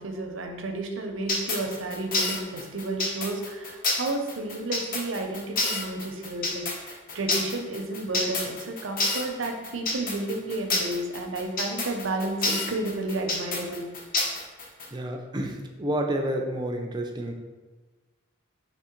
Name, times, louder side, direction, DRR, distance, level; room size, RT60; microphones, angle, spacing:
voice 1, 0.0-13.9, right 2 dB, 75° right, 4 dB, 0.6 m, -32 dB
sound 1, 1.3-14.9, left 2 dB, 45° left, 0.7 m, -28 dB
voice 2, 14.9-17.3, right 1 dB, 20° right, 3 dB, 0.4 m, -29 dB
3.6 x 3.1 x 4.4 m, 1.2 s
head